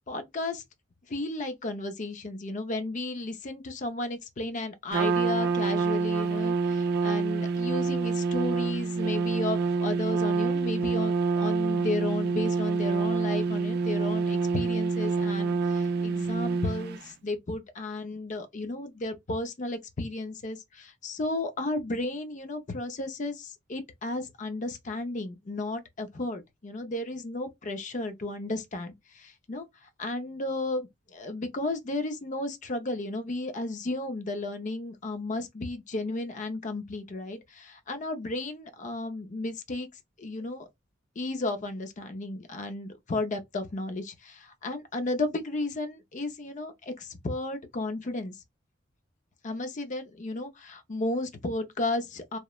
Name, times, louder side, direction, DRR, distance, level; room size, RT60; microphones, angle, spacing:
voice 1, 0.1-0.6 1.1-29.7 30.0-39.9 40.2-40.7 41.2-48.4 49.4-52.4, left 2 dB, 40° left, 0.5 m, -34 dB
Trumpet, 4.9-17.0, right 4 dB, 55° right, 0.3 m, -27 dB
3.0 x 2.0 x 2.3 m
head